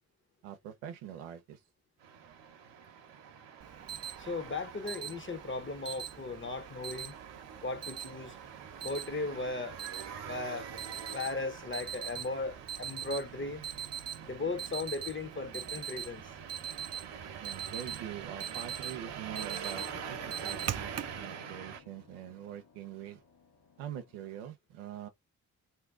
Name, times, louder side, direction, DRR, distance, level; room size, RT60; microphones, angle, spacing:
voice 1, 0.4-1.6 17.4-23.2 23.8-25.1, right 10 dB, 90° right, 0.7 m, -44 dB
sound 1, 2.0-21.8, right 8 dB, 60° right, 0.9 m, -46 dB
Alarm, 3.6-21.2, right 9 dB, 35° right, 0.5 m, -43 dB
voice 2, 4.2-7.2 7.6-8.4 8.8-9.8 10.2-10.7 11.1-13.6 14.2-16.3, left 3 dB, 25° left, 1.0 m, -37 dB
sound 2, 15.6-18.2 19.7-24.4, left 6 dB, 55° left, 1.1 m, -58 dB
2.8 x 2.2 x 3.6 m
hypercardioid pair, 40°, 47 cm